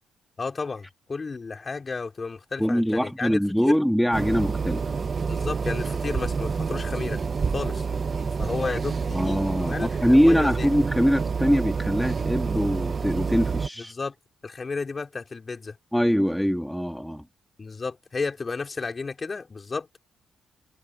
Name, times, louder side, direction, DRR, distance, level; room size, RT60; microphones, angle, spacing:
voice 1, 0.4-3.7 5.3-7.2 7.5-7.9 8.4-10.7 13.9-14.1 14.4-15.8 17.6-20.0, left 4 dB, 30° left, 3.9 m, -32 dB
voice 2, 2.6-4.9 8.7-8.8 9.1-13.9 15.9-17.3, equal, ahead, 2.9 m, -23 dB
sound 1, 4.1-13.7, right 5 dB, 40° right, 1.1 m, -28 dB
cardioid pair, 90°, 0 cm